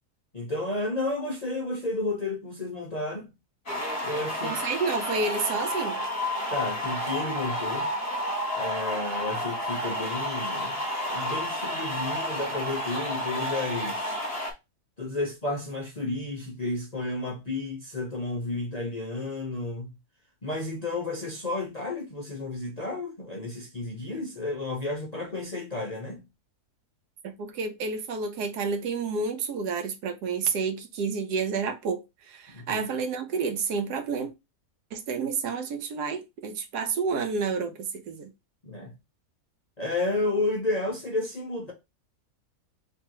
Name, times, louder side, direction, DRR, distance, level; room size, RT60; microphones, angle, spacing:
voice 1, 0.3-3.3 4.0-4.6 6.5-7.9 8.6-14.2 15.0-19.9 20.4-26.2 32.5-32.9 38.6-38.9 39.8-41.7, left 2 dB, 40° left, 0.6 m, -32 dB
sound 1, 3.7-14.5, left 1 dB, 25° left, 1.2 m, -31 dB
voice 2, 4.4-6.0 27.2-34.3 34.9-38.3, right 5 dB, 80° right, 1.3 m, -30 dB
3.3 x 2.5 x 4.5 m
omnidirectional pair, 1.7 m